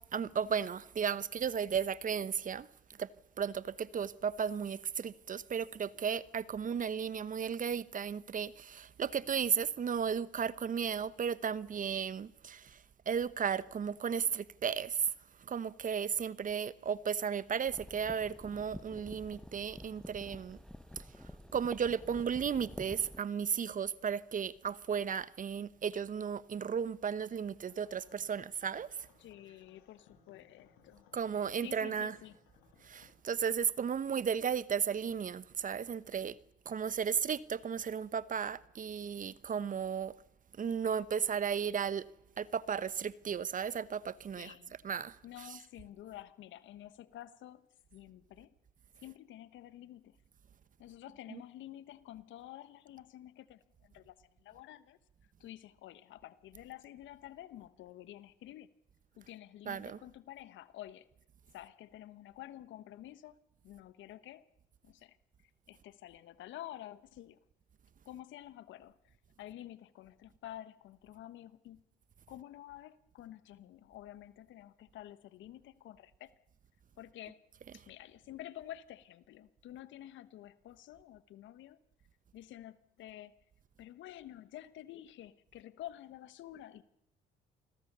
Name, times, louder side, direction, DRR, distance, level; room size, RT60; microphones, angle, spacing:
voice 1, 0.1-2.7 3.0-3.1 3.4-12.8 13.1-15.1 15.5-20.6 21.5-28.9 31.1-32.1 32.8-36.4 36.7-40.1 40.6-42.0 42.4-44.5 44.8-45.2 51.3-51.4 59.7-60.0, right 7 dB, 40° right, 1.0 m, -34 dB
sound 1, 17.7-23.2, left 1 dB, 5° left, 1.0 m, -49 dB
sound 2, 27.6-33.1, left 6 dB, 85° left, 5.3 m, -66 dB
voice 2, 29.2-31.1 31.4-32.4 44.4-44.7 45.2-47.7 47.9-48.5 49.0-50.2 50.8-55.0 55.4-58.7 59.2-61.1 61.5-63.4 63.6-64.5 64.8-65.2 65.4-67.4 68.0-71.8 72.3-76.3 77.0-77.4 77.7-81.8 82.3-83.3 83.8-86.8, left 13 dB, 70° left, 1.3 m, -50 dB
28.0 x 21.0 x 6.9 m
supercardioid pair, 65°, 20 cm